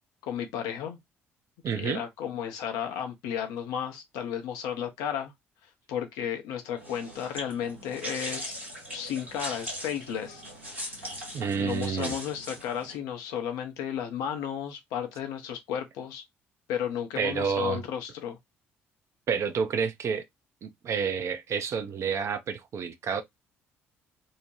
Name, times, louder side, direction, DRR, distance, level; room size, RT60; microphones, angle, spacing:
voice 1, 0.2-1.0 1.7-5.3 5.9-8.5 8.9-10.4 10.8-11.2 11.6-16.2 16.7-18.4, left 9 dB, 65° left, 0.6 m, -33 dB
voice 2, 1.6-2.0 11.3-12.2 17.2-17.8 19.3-20.2 20.6-23.2, right 6 dB, 45° right, 0.5 m, -29 dB
sound 1, 6.8-13.0, equal, 90° right, 1.1 m, -40 dB
2.7 x 2.1 x 2.9 m
figure-of-eight pair, 50°, 7 cm